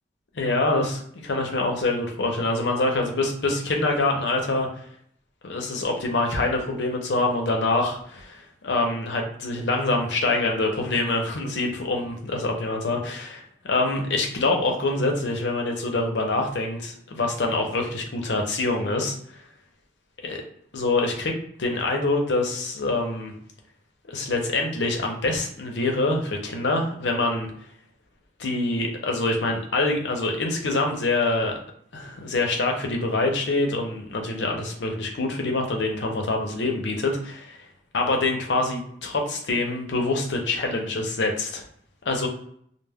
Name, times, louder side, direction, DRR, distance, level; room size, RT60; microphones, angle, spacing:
voice 1, 0.3-4.7 5.4-19.1 20.2-20.4 20.7-23.3 24.1-27.5 28.4-31.6 31.9-37.6 37.9-41.6 42.1-42.3, left 2 dB, 80° left, 2 dB, 0.6 m, -25 dB
2.2 x 2.1 x 3.4 m, 0.64 s
head